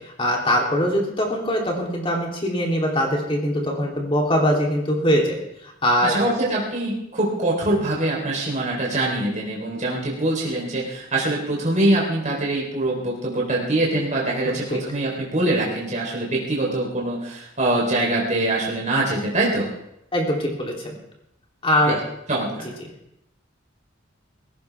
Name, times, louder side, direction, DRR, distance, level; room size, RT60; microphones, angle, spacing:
voice 1, 0.0-5.4 5.6-6.2 14.4-14.8 20.1-20.9 21.6-22.0 22.6-22.7, equal, 30° left, -1 dB, 3.2 m, -22 dB
voice 2, 6.0-19.7 21.8-22.0 22.3-22.7, right 1 dB, 40° right, -3 dB, 3.7 m, -23 dB
19.5 x 16.5 x 3.5 m, 0.81 s
head